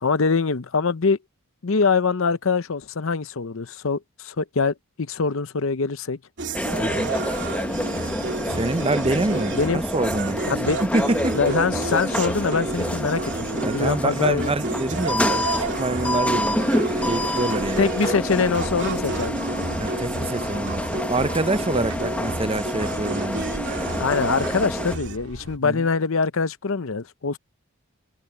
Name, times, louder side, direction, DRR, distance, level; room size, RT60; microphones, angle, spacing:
voice 1, 0.0-1.2 1.6-6.2 9.5-9.8 10.5-10.8 11.3-14.6 17.8-19.3 21.7-21.8 24.0-27.4, left 4 dB, 60° left, 0.7 m, -24 dB
sound 1, 6.4-25.2, right 3 dB, 55° right, 2.9 m, -31 dB
sound 2, 6.5-25.0, left 1 dB, 5° left, 0.9 m, -28 dB
voice 2, 6.8-7.1 8.4-11.4 13.6-17.9 19.8-23.5 25.6-25.9, right 2 dB, 25° right, 0.7 m, -26 dB
sound 3, 18.7-25.6, right 1 dB, 85° right, 4.5 m, -41 dB
head